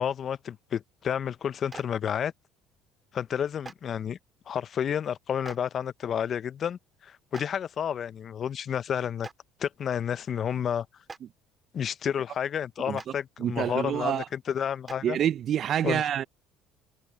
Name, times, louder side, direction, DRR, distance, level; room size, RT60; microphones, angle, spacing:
voice 1, 0.0-2.3 3.1-4.2 4.5-9.3 9.6-10.9 11.7-15.2 15.8-16.0, left 8 dB, 45° left, 0.7 m, -30 dB
Clapping, 1.7-1.8 3.6-3.7 5.4-5.6 7.3-7.4 9.2-9.3 11.0-11.2 12.9-13.1 14.9-15.0, right 4 dB, 30° right, 2.0 m, -41 dB
voice 2, 13.4-14.2 15.0-16.2, right 10 dB, 55° right, 0.6 m, -27 dB
hypercardioid pair, 70°, 0 cm